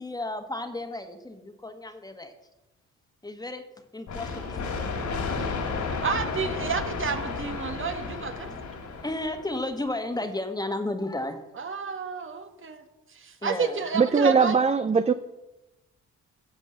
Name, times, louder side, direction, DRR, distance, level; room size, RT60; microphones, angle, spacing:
voice 1, 0.0-2.3 3.2-3.6 3.9-4.6 8.9-11.4 13.4-13.8, left 2 dB, 15° left, 7 dB, 1.6 m, -33 dB
sound 1, 4.1-9.7, left 4 dB, 70° left, 3.0 m, -32 dB
voice 2, 6.0-8.5 11.6-12.8 13.1-14.6, right 6 dB, 40° right, 7 dB, 1.5 m, -30 dB
voice 3, 13.9-15.1, right 5 dB, 20° right, 11 dB, 0.5 m, -21 dB
15.5 x 5.3 x 7.8 m, 0.97 s
cardioid pair, 90°, 30 cm